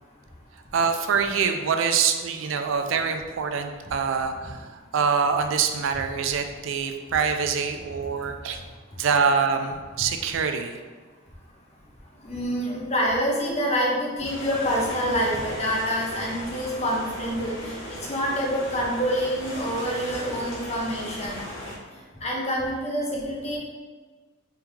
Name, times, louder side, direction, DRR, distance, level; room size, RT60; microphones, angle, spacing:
voice 1, 0.7-8.6 9.0-10.8, right 6 dB, 75° right, 6 dB, 0.4 m, -25 dB
voice 2, 12.2-17.7 18.1-21.4 22.2-23.6, equal, 30° left, -3 dB, 0.8 m, -26 dB
sound 1, 14.2-21.8, left 1 dB, 85° left, 1.3 m, -37 dB
3.5 x 3.5 x 3.1 m, 1.4 s
head